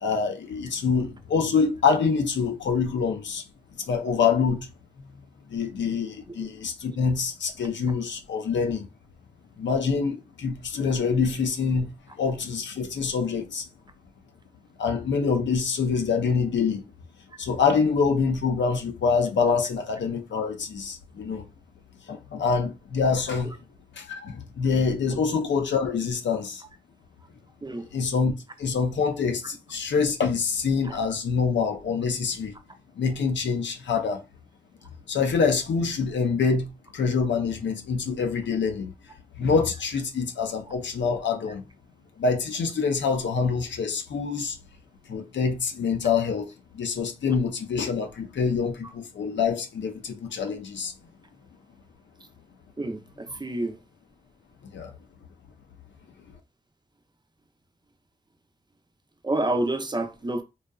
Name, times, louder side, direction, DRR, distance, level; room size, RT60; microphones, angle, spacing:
voice 1, 0.0-3.4 3.8-4.7 5.5-8.9 9.6-11.9 12.2-13.7 14.8-16.8 17.4-21.4 22.1-23.6 24.0-26.6 27.7-28.3 28.6-32.5 33.0-34.2 35.1-38.9 39.4-41.6 42.2-44.6 45.1-50.9 54.6-54.9, left 5 dB, 85° left, 0.5 m, -25 dB
voice 2, 52.8-53.8 59.2-60.4, right 1 dB, 25° right, 0.5 m, -28 dB
2.7 x 2.3 x 2.3 m
cardioid pair, 55°, 18 cm